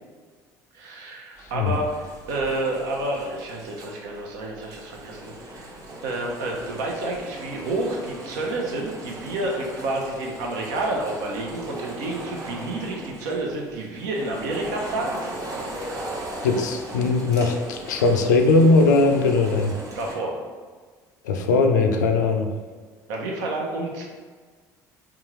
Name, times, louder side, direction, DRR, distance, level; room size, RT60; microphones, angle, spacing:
voice 1, 0.7-5.7 6.0-15.2 20.0-20.4 23.1-24.0, right 2 dB, 75° right, 0 dB, 0.7 m, -29 dB
sound 1, 1.4-20.1, right 1 dB, 40° right, 0.9 m, -38 dB
voice 2, 16.4-19.7 21.2-22.5, left 3 dB, 90° left, 4 dB, 0.3 m, -19 dB
3.6 x 2.4 x 3.0 m, 1.5 s
hypercardioid pair, 65°, 9 cm